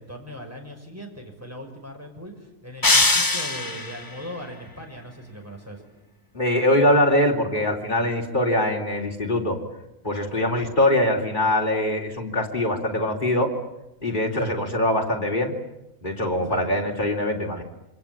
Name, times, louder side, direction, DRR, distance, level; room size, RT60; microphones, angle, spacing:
voice 1, 0.0-5.8 10.4-10.5 14.4-14.6 16.5-16.6, equal, 10° right, 2 dB, 5.7 m, -39 dB
sound 1, 2.8-4.1, left 2 dB, 15° left, 0.9 m, -21 dB
voice 2, 6.3-9.6 10.0-13.5 14.0-15.5 16.0-17.6, left 1 dB, 35° left, 1 dB, 3.8 m, -23 dB
26.5 x 25.0 x 8.9 m, 0.91 s
omnidirectional pair, 1.4 m